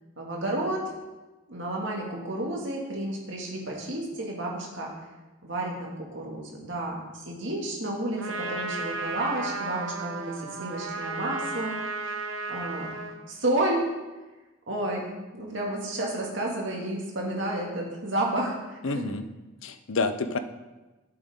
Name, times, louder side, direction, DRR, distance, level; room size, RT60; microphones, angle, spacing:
voice 1, 0.2-0.9 1.5-4.9 5.4-11.9 12.5-13.0 13.3-13.9 14.7-19.0, right 1 dB, 65° right, -2 dB, 2.3 m, -31 dB
Trumpet, 8.2-13.2, right 3 dB, 90° right, 1.0 m, -34 dB
voice 2, 18.8-19.2 19.6-20.4, left 3 dB, 80° left, 10 dB, 0.7 m, -28 dB
11.5 x 7.8 x 3.8 m, 1.1 s
head